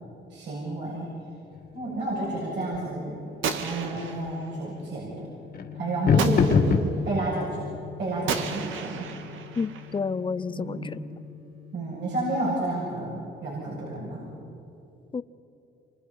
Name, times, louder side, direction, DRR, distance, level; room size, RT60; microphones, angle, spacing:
voice 1, 0.3-1.1 1.7-3.2 3.5-5.3 5.7-6.5 7.1-7.6 8.0-9.1 10.5-10.9 11.7-14.2, right 2 dB, 65° right, -6 dB, 7.7 m, -31 dB
sound 1, 1.5-12.3, left 5 dB, 50° left, 2.5 m, -30 dB
Gunshot gunfire, 3.4-4.5 6.2-7.0 8.3-10.0, right 6 dB, 80° right, 1.8 m, -33 dB
voice 2, 9.6-11.0 15.1-15.2, left 5 dB, 25° left, 16 dB, 0.7 m, -30 dB
28.0 x 25.0 x 5.7 m, 3.0 s
cardioid pair, 90°, 20 cm